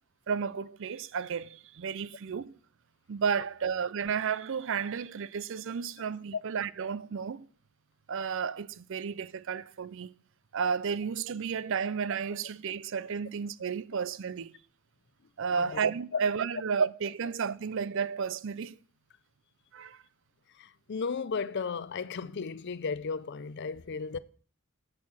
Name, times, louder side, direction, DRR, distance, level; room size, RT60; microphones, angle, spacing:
voice 1, 0.3-2.6 3.1-7.5 8.1-10.1 10.5-14.5 15.4-18.8 19.7-20.0, right 6 dB, 60° right, 0.5 m, -32 dB
voice 2, 20.5-24.2, left 5 dB, 55° left, 0.5 m, -35 dB
8.5 x 7.5 x 6.2 m
head